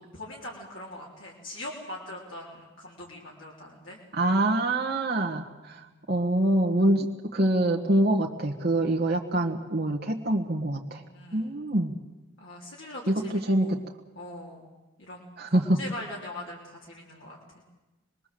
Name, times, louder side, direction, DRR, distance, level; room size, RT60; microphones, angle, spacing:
voice 1, 0.1-4.0 5.8-5.9 8.8-9.0 11.0-11.6 12.4-13.8 14.2-14.6 15.0-17.4, left 1 dB, 65° left, -3 dB, 3.8 m, -42 dB
voice 2, 4.1-7.1 7.3-11.0 11.3-11.9 13.1-13.8 15.4-15.8, right 1 dB, 45° right, 1 dB, 1.5 m, -25 dB
26.5 x 21.0 x 7.7 m, 1.1 s
head